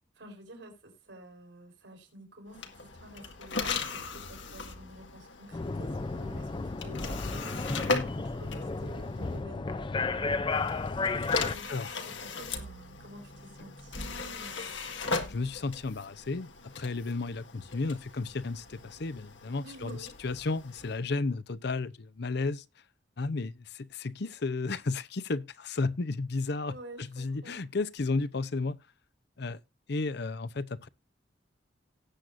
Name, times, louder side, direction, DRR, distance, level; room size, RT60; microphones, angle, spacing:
voice 1, 0.1-10.7 11.1-14.7 19.6-20.1 26.7-27.6, right 1 dB, 80° right, 4.4 m, -50 dB
sound 1, 2.5-9.4 10.5-21.0, left 4 dB, 90° left, 1.9 m, -38 dB
sound 2, 5.5-11.5, left 3 dB, 25° left, 0.5 m, -33 dB
voice 2, 15.3-22.6 23.2-28.8 29.4-29.6 29.9-30.9, left 3 dB, 65° left, 0.7 m, -33 dB
18.0 x 7.7 x 2.6 m
head